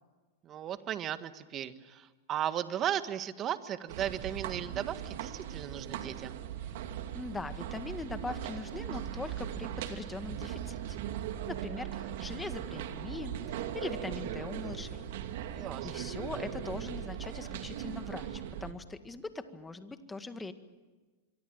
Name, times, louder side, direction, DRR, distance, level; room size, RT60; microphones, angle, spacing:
voice 1, 0.4-6.4 15.5-16.0, right 10 dB, 30° right, 11 dB, 1.6 m, -36 dB
sound 1, 3.9-18.7, right 10 dB, 70° right, 2.6 m, -39 dB
voice 2, 7.1-11.1 11.5-13.3 13.7-15.1 15.8-20.5, left 3 dB, 10° left, 9 dB, 1.9 m, -41 dB
25.5 x 24.0 x 9.0 m, 1.3 s
supercardioid pair, 130°, 0 cm